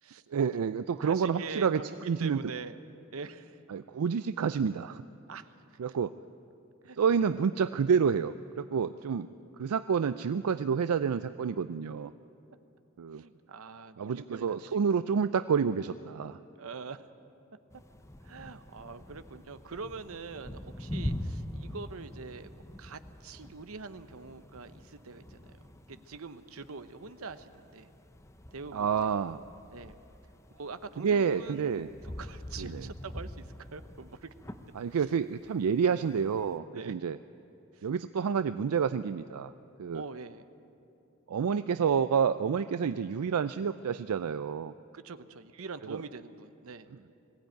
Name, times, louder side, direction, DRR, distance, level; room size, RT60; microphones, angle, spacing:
voice 1, 0.3-1.8 2.1-2.4 3.7-5.0 5.8-6.1 7.0-9.3 9.6-12.1 13.0-13.2 14.0-16.4 28.7-29.4 31.0-31.9 32.6-32.9 34.8-37.2 37.8-39.5 39.8-40.0 41.3-44.7 45.9-46.0, right 6 dB, 90° right, 12 dB, 0.4 m, -29 dB
voice 2, 1.0-2.8 3.1-3.6 5.3-5.5 5.9-6.0 6.8-7.2 13.2-14.8 16.6-17.1 18.2-25.5 25.9-27.9 28.5-29.1 29.7-29.9 30.5-34.3 34.9-35.1 36.7-36.9 37.7-37.9 39.9-40.4 44.9-46.9, right 4 dB, 75° right, 11 dB, 0.8 m, -44 dB
sound 1, 17.7-36.6, left 1 dB, 15° left, 0.7 m, -44 dB
21.0 x 15.5 x 9.2 m, 2.8 s
head